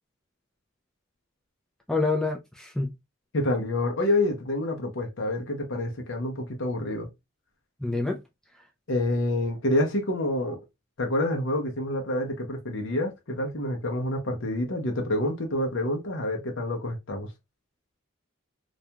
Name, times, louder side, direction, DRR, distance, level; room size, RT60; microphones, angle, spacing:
voice 1, 1.9-2.9 7.8-8.2, left 3 dB, 5° left, 0.3 m, -27 dB
voice 2, 3.3-7.1 8.9-10.6 11.0-17.3, left 1 dB, 60° left, 0.6 m, -27 dB
2.4 x 2.2 x 2.7 m
head